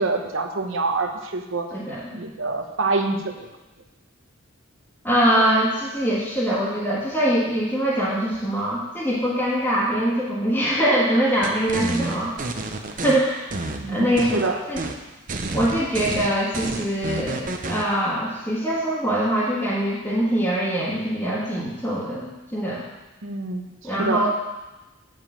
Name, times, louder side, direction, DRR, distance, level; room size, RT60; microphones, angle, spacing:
voice 1, 0.0-1.7 2.1-3.5 13.8-14.6 23.2-24.2, right 3 dB, 65° right, 5 dB, 1.0 m, -26 dB
voice 2, 1.7-2.1 5.0-12.3 13.0-13.5 13.9-14.8 15.5-22.8 23.8-24.3, right 1 dB, 10° left, -9 dB, 1.5 m, -23 dB
sound 1, 11.4-13.2 13.5-14.5 14.8-15.0 15.3-17.9, right 2 dB, 40° right, 0.7 m, -29 dB
9.4 x 5.1 x 7.3 m, 1.1 s
head